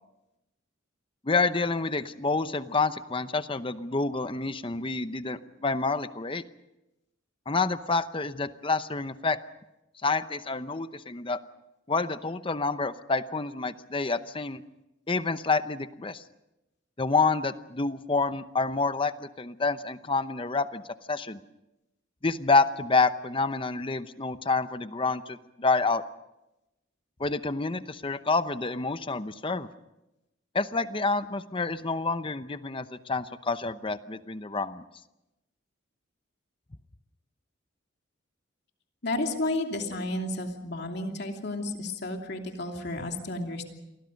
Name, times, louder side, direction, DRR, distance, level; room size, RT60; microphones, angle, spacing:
voice 1, 1.2-6.4 7.5-9.4 10.0-11.4 11.9-14.6 15.1-16.2 17.0-20.8 21.1-21.4 22.2-26.0 27.2-29.7 30.5-34.8, left 3 dB, 25° left, 12 dB, 0.8 m, -28 dB
voice 2, 39.0-43.7, left 2 dB, 55° left, 3 dB, 2.9 m, -32 dB
29.5 x 23.0 x 5.3 m, 0.91 s
head